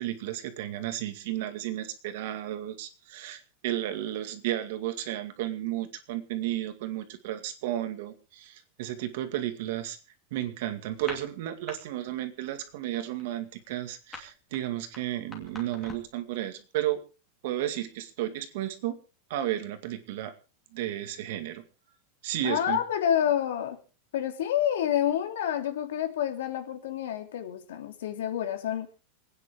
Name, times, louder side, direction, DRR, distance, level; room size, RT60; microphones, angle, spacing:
voice 1, 0.0-10.0 10.3-17.0 17.4-19.0 19.3-20.3 20.7-21.6 22.2-22.8, right 13 dB, 55° right, 9 dB, 2.1 m, -33 dB
sound 1, 10.9-11.8 12.1-12.4 12.7-16.2, left 4 dB, 10° left, 2.7 m, -44 dB
voice 2, 22.4-23.8 24.1-28.9, left 10 dB, 90° left, 6 dB, 2.9 m, -28 dB
28.0 x 9.6 x 3.7 m, 0.32 s
supercardioid pair, 175°, 0 cm